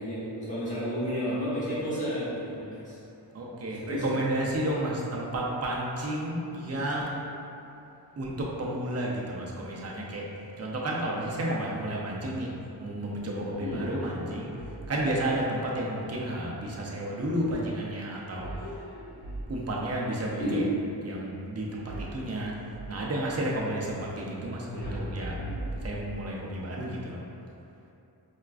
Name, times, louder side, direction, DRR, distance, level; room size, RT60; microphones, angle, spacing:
voice 1, 0.0-3.0 3.7-4.2 13.6-13.8 20.4-20.6, equal, 20° left, -11 dB, 1.2 m, -31 dB
voice 2, 3.3-7.2 8.2-10.3 10.6-12.5 12.8-14.5 14.9-18.5 19.5-20.6 21.0-22.5 22.9-25.3 25.8-27.2, right 1 dB, 35° right, -3 dB, 0.5 m, -31 dB
sound 1, 13.6-15.2 18.3-19.9 21.8-23.0 24.7-26.4, right 1 dB, 45° left, 0.8 m, -39 dB
4.4 x 2.3 x 2.4 m, 2.8 s
wide cardioid pair, 90°, 42 cm